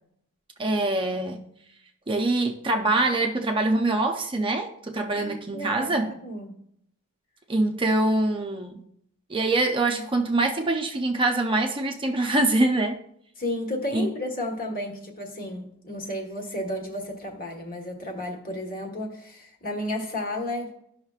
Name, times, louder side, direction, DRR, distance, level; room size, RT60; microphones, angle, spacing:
voice 1, 0.6-1.4 2.1-6.1 7.5-8.8 9.3-13.0 13.9-14.1, right 2 dB, 25° right, 3 dB, 0.6 m, -24 dB
voice 2, 5.1-6.6 13.4-20.7, left 1 dB, 40° left, 1 dB, 1.4 m, -33 dB
13.0 x 5.7 x 2.4 m, 0.72 s
head